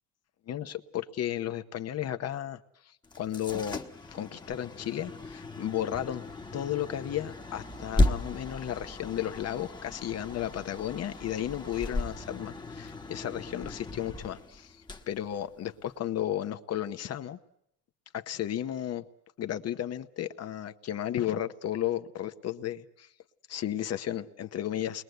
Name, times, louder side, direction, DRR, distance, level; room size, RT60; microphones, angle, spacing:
voice 1, 0.5-3.8 4.1-6.3 6.5-17.4 18.1-19.0 19.4-23.1 23.5-25.0, left 11 dB, 40° left, 9 dB, 1.0 m, -34 dB
sound 1, 3.0-16.0, left 2 dB, 10° left, 1.3 m, -35 dB
29.0 x 21.5 x 8.0 m, 0.77 s
cardioid pair, 145°, 38 cm